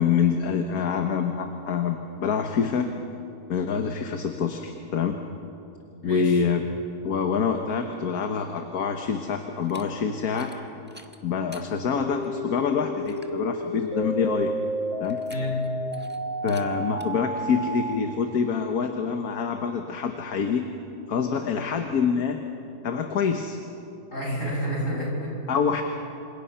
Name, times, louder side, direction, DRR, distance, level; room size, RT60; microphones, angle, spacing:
voice 1, 0.0-2.9 3.5-5.2 6.0-6.6 7.0-10.5 11.2-14.5 15.0-15.2 16.4-20.7 21.1-22.4 22.8-23.6 25.5-25.8, left 6 dB, 65° left, 5 dB, 1.6 m, -26 dB
voice 2, 6.0-6.4 15.3-15.6 24.1-25.3, equal, 50° left, -4 dB, 8.3 m, -29 dB
sound 1, 9.6-9.8 10.3-10.6 10.9-11.7 12.2-12.3 12.7-12.8 13.1-13.4 15.0-15.7 15.9-16.2 16.5-16.6 17.0-17.1, right 1 dB, 5° right, 1.2 m, -48 dB
sound 2, 11.9-17.9, equal, 25° left, 4.0 m, -31 dB
27.5 x 27.0 x 5.7 m, 2.8 s
omnidirectional pair, 1.8 m